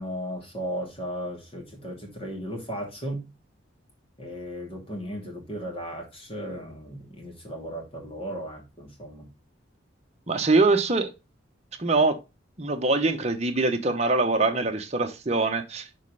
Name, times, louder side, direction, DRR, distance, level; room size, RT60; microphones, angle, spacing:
voice 1, 0.0-3.3 4.2-9.3, equal, 30° left, 2.5 m, -36 dB
voice 2, 10.3-11.1 11.8-12.2 12.6-16.0, right 3 dB, 35° right, 1.0 m, -23 dB
6.5 x 4.3 x 4.8 m
head